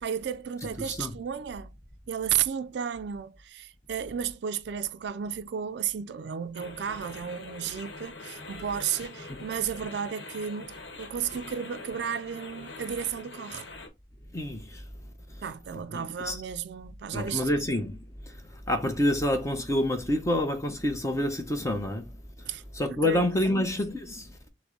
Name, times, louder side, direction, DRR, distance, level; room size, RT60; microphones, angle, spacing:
voice 1, 0.0-1.7 2.1-13.7 15.4-17.5 22.5-22.6 22.9-23.7, right 8 dB, 60° right, 0.4 m, -33 dB
sound 1, 6.5-13.9, left 3 dB, 65° left, 1.1 m, -44 dB
voice 2, 14.3-14.8 15.9-16.4 17.1-18.0 18.3-18.4 18.7-22.1 22.7-24.3, left 1 dB, 15° left, 0.7 m, -27 dB
5.9 x 2.1 x 3.7 m
head